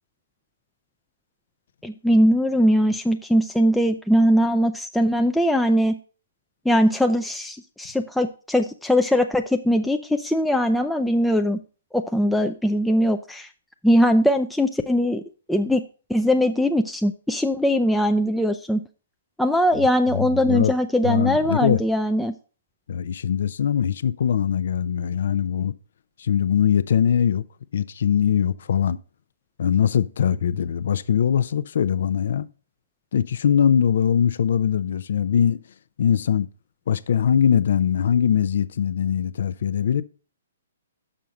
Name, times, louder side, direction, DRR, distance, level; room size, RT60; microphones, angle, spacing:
voice 1, 1.8-6.0 6.7-11.6 11.9-13.5 13.8-15.2 15.5-15.8 16.1-18.8 19.4-22.3, equal, ahead, 0.4 m, -21 dB
voice 2, 20.1-20.7 21.0-21.8 22.9-25.7 26.2-27.4 27.7-29.0 29.6-32.5 33.1-35.6 36.0-36.5 36.9-40.0, left 8 dB, 65° left, 0.5 m, -21 dB
6.2 x 5.7 x 5.2 m
hypercardioid pair, 150°, 0 cm